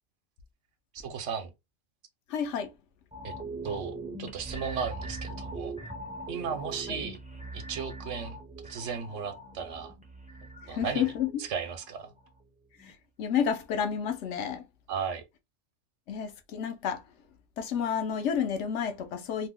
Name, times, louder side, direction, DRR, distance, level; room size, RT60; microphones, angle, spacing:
voice 1, 0.9-1.5 3.2-3.3 3.6-5.7 6.3-7.2 7.5-9.9 10.7-11.1 11.4-12.1 14.9-15.2, right 6 dB, 75° right, 1.0 m, -35 dB
voice 2, 2.3-2.7 6.9-7.0 10.6-11.4 12.8-14.6 16.1-17.0 17.6-19.5, left 8 dB, 70° left, 0.9 m, -30 dB
sound 1, 3.1-12.4 12.8-12.9, right 2 dB, 10° right, 0.4 m, -41 dB
2.7 x 2.1 x 3.6 m
omnidirectional pair, 1.3 m